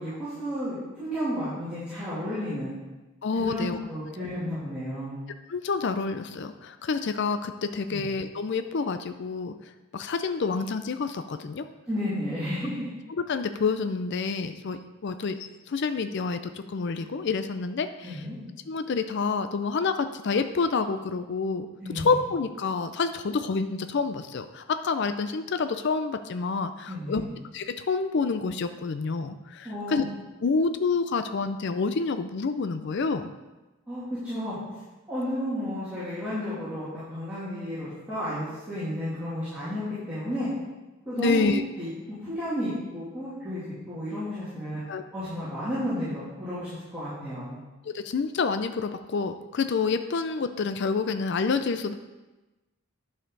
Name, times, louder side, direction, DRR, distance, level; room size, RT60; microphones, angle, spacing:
voice 1, 0.0-2.7 3.4-5.2 7.9-8.0 11.9-12.9 18.0-18.4 21.8-22.2 26.8-27.3 29.6-30.0 33.9-34.6 35.1-39.8 40.1-40.5 41.0-41.5 41.8-44.8 45.1-47.6, equal, 5° right, -14 dB, 2.8 m, -32 dB
voice 2, 3.2-3.8 5.5-9.5 9.9-11.6 13.2-15.4 15.7-16.4 16.7-18.2 18.7-21.7 21.9-27.2 27.5-30.0 30.4-33.3 41.2-41.6 44.9-45.0 47.9-51.9, left 4 dB, 50° left, 9 dB, 0.4 m, -28 dB
10.0 x 6.6 x 3.9 m, 1.1 s
head